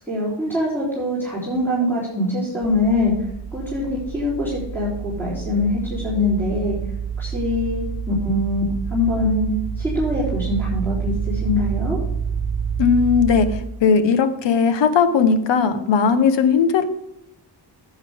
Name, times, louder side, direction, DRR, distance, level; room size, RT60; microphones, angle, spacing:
voice 1, 0.1-3.1 3.5-6.8 7.2-8.6 8.9-9.5 9.8-12.0, left 2 dB, 5° left, -10 dB, 3.6 m, -23 dB
sound 1, 2.6-13.6, right 7 dB, 20° right, 2.0 m, -28 dB
voice 2, 12.8-16.9, left 6 dB, 85° left, 10 dB, 1.1 m, -18 dB
11.0 x 8.0 x 3.5 m, 0.81 s
wide cardioid pair, 135°, 42 cm